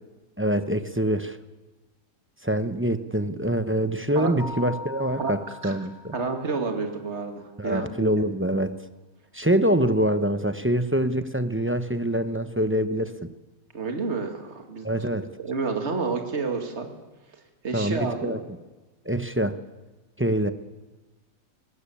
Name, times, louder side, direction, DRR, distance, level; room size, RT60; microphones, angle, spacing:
voice 1, 0.4-1.4 2.4-6.1 7.6-8.7 9.3-13.3 14.8-15.3 17.7-18.4 19.0-19.6 20.2-20.5, right 1 dB, 10° right, 10 dB, 0.8 m, -25 dB
Keyboard (musical), 4.4-6.8, left 3 dB, 45° left, 2.3 m, -41 dB
voice 2, 5.2-5.8 6.1-8.2 13.7-14.9 15.4-16.9 17.6-18.4, right 4 dB, 50° right, 5 dB, 2.6 m, -30 dB
21.0 x 19.0 x 8.6 m, 1.2 s
omnidirectional pair, 1.5 m